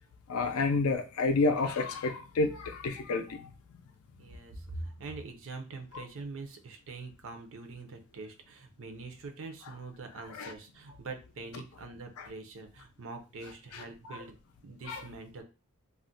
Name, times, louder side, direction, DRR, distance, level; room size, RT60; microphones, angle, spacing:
voice 1, 0.3-3.5 5.9-6.0 10.3-10.5 12.2-12.3 13.7-14.2 14.9-15.0, left 3 dB, 75° left, 6 dB, 0.4 m, -30 dB
voice 2, 4.2-14.4 14.6-15.4, right 3 dB, 60° right, 6 dB, 0.6 m, -44 dB
2.4 x 2.1 x 3.8 m, 0.33 s
head